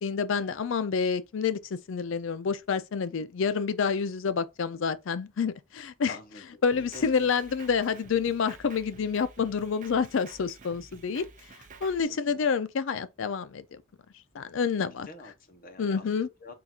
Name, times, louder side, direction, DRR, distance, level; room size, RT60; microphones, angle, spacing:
voice 1, 0.0-6.1 6.6-11.3 11.8-13.8 14.3-15.1 15.8-16.3, left 6 dB, 65° left, 0.4 m, -28 dB
voice 2, 6.1-7.3 11.1-11.2 12.0-12.5 14.9-16.5, left 2 dB, 40° left, 0.8 m, -48 dB
Drum kit, 6.7-12.0, right 4 dB, 35° right, 0.5 m, -51 dB
3.8 x 2.4 x 4.2 m
head